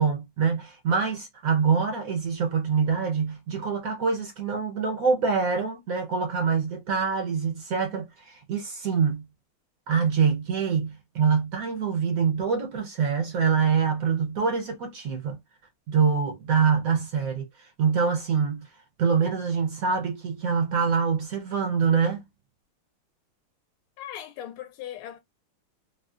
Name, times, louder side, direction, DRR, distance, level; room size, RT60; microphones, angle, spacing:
voice 1, 0.0-9.3 9.9-15.4 15.9-18.7 19.0-22.2, right 6 dB, 70° right, 0.8 m, -25 dB
voice 2, 24.0-25.2, left 11 dB, 85° left, 1.4 m, -38 dB
3.7 x 2.1 x 2.4 m
omnidirectional pair, 2.3 m